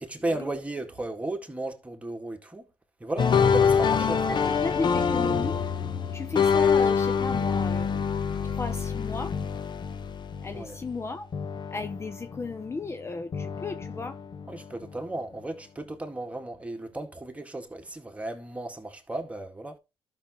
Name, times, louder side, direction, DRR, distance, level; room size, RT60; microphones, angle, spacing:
voice 1, 0.0-2.7 3.0-4.5 10.5-10.8 14.5-19.8, right 2 dB, 15° right, 1.9 m, -35 dB
sound 1, 3.2-11.1 11.3-12.9 13.3-14.9, left 6 dB, 45° left, 1.0 m, -26 dB
voice 2, 4.0-5.6 6.1-7.9 8.4-9.4 10.4-11.3 11.7-14.4, left 4 dB, 25° left, 0.7 m, -35 dB
12.0 x 6.1 x 3.1 m
cardioid pair, 80°, 10 cm